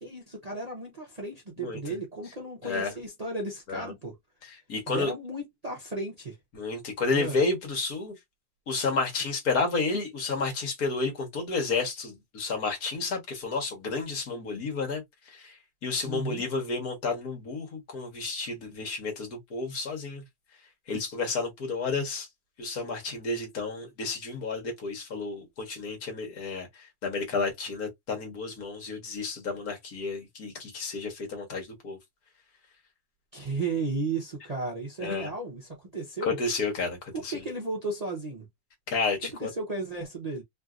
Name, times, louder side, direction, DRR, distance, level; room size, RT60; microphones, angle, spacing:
voice 1, 0.0-4.2 4.9-6.4 7.1-7.4 16.0-16.4 33.3-36.4 37.1-38.4 39.4-40.4, right 2 dB, 35° right, 0.7 m, -34 dB
voice 2, 2.6-2.9 3.7-3.9 4.4-5.1 6.5-8.1 8.7-15.0 15.3-15.6 15.8-20.2 20.9-22.3 22.6-32.0 35.0-35.3 36.3-37.3 38.9-39.5, left 3 dB, 70° left, 1.7 m, -31 dB
3.3 x 2.6 x 2.3 m
omnidirectional pair, 1.7 m